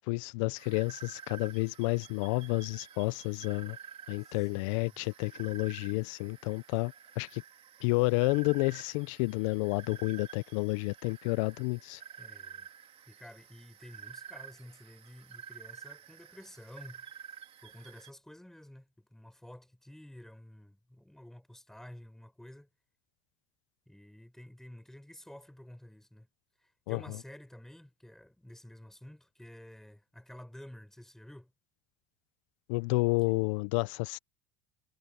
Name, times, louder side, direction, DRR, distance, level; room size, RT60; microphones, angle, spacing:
voice 1, 0.0-3.8 4.1-7.4 7.8-12.0 26.9-27.0 32.7-34.2, left 25 dB, 90° left, 0.5 m, -30 dB
sound 1, 0.6-18.1, right 8 dB, 35° right, 2.1 m, -51 dB
voice 2, 4.2-5.0 12.2-12.7 13.1-17.1 17.6-22.7 23.9-26.3 26.6-31.5, left 1 dB, 5° left, 6.9 m, -51 dB
cardioid pair, 140°, 16 cm